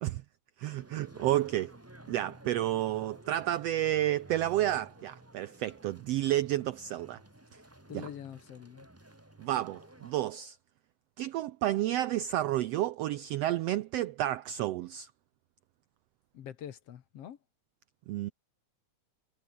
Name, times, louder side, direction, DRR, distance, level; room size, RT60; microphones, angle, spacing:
voice 1, 0.6-1.7 2.1-7.2 7.9-8.1 9.4-10.6 11.2-15.1 18.1-18.3, right 13 dB, 85° right, 1.4 m, -31 dB
sound 1, 0.7-10.1, right 1 dB, 10° right, 0.9 m, -53 dB
voice 2, 7.9-8.9 16.3-17.4, left 10 dB, 60° left, 2.1 m, -44 dB
omnidirectional pair, 3.6 m